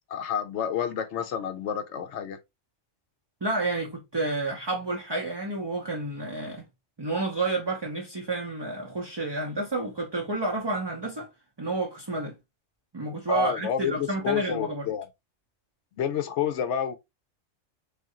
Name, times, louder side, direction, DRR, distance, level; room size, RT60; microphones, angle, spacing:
voice 1, 0.1-2.4 13.3-15.1 16.0-17.0, left 8 dB, 70° left, 0.9 m, -29 dB
voice 2, 3.4-6.6 7.0-11.3 11.6-12.3 12.9-14.9, right 2 dB, 25° right, 0.7 m, -30 dB
3.7 x 3.3 x 2.8 m
omnidirectional pair, 1.3 m